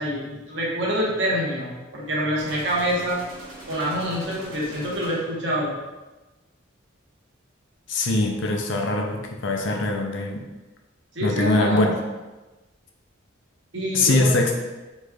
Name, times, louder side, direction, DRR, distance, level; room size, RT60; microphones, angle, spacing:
voice 1, 0.0-3.2 3.7-5.7 11.1-11.8 13.7-14.3, equal, 65° right, -4 dB, 1.1 m, -26 dB
sound 1, 2.4-5.5, right 1 dB, 85° right, 1.1 m, -42 dB
voice 2, 7.9-10.5 11.2-11.9 13.9-14.5, left 2 dB, 65° left, 2 dB, 0.5 m, -22 dB
4.9 x 3.1 x 2.4 m, 1.1 s
head